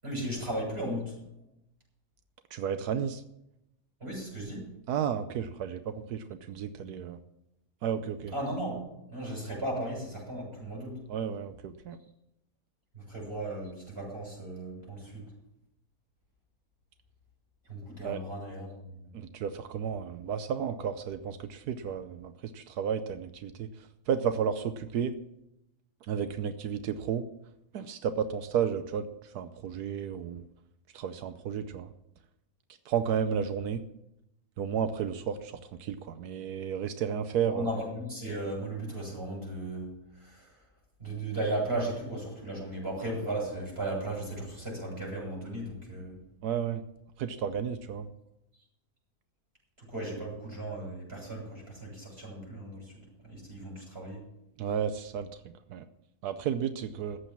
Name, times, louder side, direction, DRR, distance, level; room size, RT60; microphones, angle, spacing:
voice 1, 0.0-1.1 4.0-4.7 8.3-11.0 12.9-15.2 17.7-19.0 37.5-39.9 40.2-40.5 41.0-46.2 49.8-52.9 53.2-54.2, right 1 dB, 40° right, -2 dB, 7.2 m, -36 dB
voice 2, 2.5-3.2 4.9-7.2 7.8-8.3 11.1-12.0 18.0-18.2 19.1-23.7 24.1-25.1 26.1-27.2 27.7-29.1 29.3-30.4 30.9-31.9 32.9-33.8 34.6-35.5 35.8-37.7 46.4-46.8 47.2-48.1 54.6-55.3 55.7-55.8 56.2-57.2, right 8 dB, 85° right, 10 dB, 1.3 m, -32 dB
14.0 x 8.3 x 7.3 m, 0.84 s
omnidirectional pair, 1.6 m